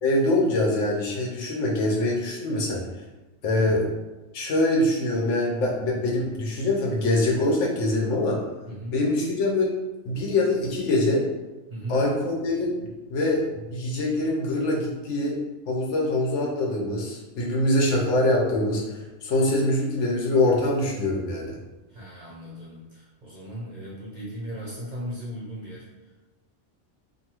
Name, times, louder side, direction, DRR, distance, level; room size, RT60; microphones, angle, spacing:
voice 1, 0.0-2.8 3.4-3.9 4.3-8.4 8.9-9.7 10.0-11.2 11.9-15.4 15.7-21.5, left 1 dB, 75° left, -2 dB, 1.0 m, -24 dB
voice 2, 3.5-3.9 8.7-9.0 11.7-12.0 21.9-26.1, equal, 45° right, -6 dB, 0.6 m, -37 dB
2.6 x 2.4 x 2.9 m, 1.1 s
omnidirectional pair, 1.3 m